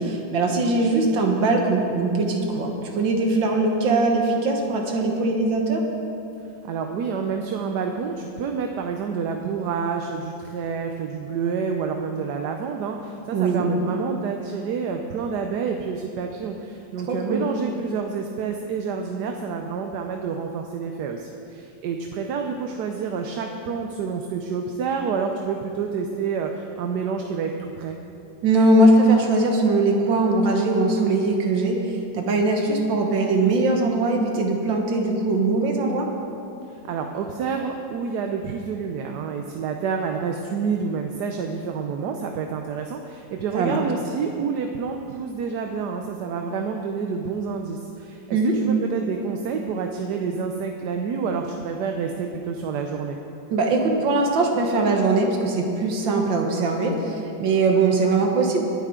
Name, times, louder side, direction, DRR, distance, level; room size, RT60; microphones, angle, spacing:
voice 1, 0.0-5.8 13.3-13.7 17.1-17.4 28.4-36.1 43.5-43.8 48.3-48.6 53.5-58.6, right 2 dB, 85° right, 2 dB, 2.0 m, -21 dB
voice 2, 6.6-28.0 36.7-53.2, right 5 dB, 70° right, 3 dB, 1.2 m, -28 dB
22.5 x 9.2 x 3.8 m, 2.8 s
omnidirectional pair, 2.0 m